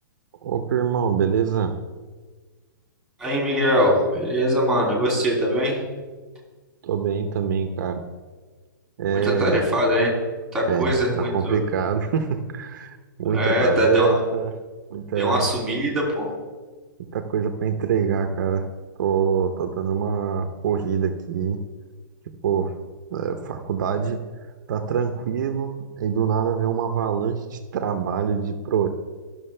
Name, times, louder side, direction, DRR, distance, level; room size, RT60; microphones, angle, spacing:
voice 1, 0.4-1.7 6.8-8.0 9.0-9.6 10.7-14.5 14.9-15.5 17.1-18.7 19.0-21.6 22.4-22.7 23.1-24.2 24.7-28.9, right 7 dB, 60° right, 6 dB, 0.8 m, -24 dB
voice 2, 3.2-5.8 9.1-10.1 10.5-11.6 13.3-14.2 15.2-16.3, equal, 5° right, -3 dB, 2.8 m, -22 dB
13.0 x 6.3 x 3.3 m, 1.4 s
hypercardioid pair, 150°, 11 cm